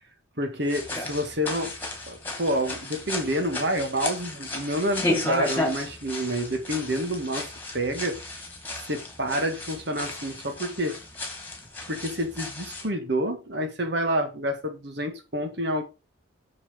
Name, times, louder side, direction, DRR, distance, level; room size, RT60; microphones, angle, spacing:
voice 1, 0.4-1.7 2.1-8.2 8.9-11.0 11.9-15.8, equal, 60° right, 1.8 m, -28 dB
sound 1, 0.6-12.9, left 2 dB, 10° left, 2.7 m, -34 dB
7.0 x 6.8 x 5.3 m
head